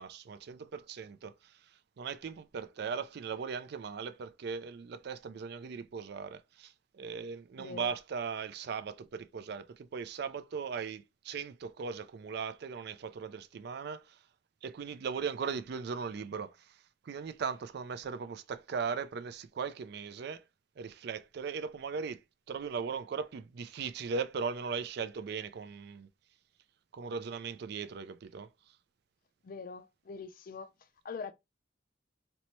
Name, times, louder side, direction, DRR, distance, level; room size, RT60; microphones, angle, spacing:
voice 1, 0.0-14.2 14.6-20.4 20.8-22.2 22.5-26.1 26.9-28.5, right 5 dB, 60° right, 0.4 m, -38 dB
voice 2, 7.6-7.9 29.4-30.7 31.0-31.3, left 5 dB, 50° left, 0.4 m, -43 dB
4.1 x 2.1 x 3.0 m
head